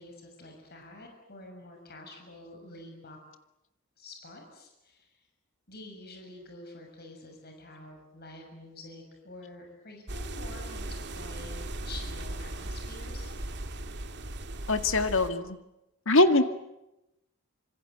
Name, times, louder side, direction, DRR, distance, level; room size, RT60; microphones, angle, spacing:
voice 1, 0.0-3.2 4.0-5.2 5.7-13.3, left 2 dB, 50° left, 3 dB, 6.5 m, -48 dB
sound 1, 10.1-15.3, right 1 dB, 55° right, 2.2 m, -37 dB
voice 2, 14.7-15.6 16.1-16.4, left 2 dB, 65° left, 8 dB, 2.1 m, -22 dB
27.5 x 26.0 x 8.1 m, 0.90 s
head